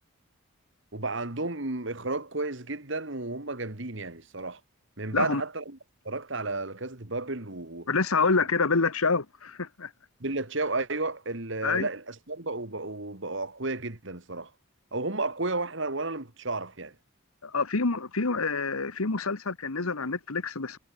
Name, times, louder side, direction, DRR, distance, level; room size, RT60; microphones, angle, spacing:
voice 1, 0.9-4.6 5.0-5.8 6.0-7.9 10.2-14.5 14.9-17.0, right 2 dB, 55° right, 2.1 m, -32 dB
voice 2, 7.9-9.9 11.6-11.9 17.4-20.8, left 4 dB, 85° left, 1.4 m, -27 dB
head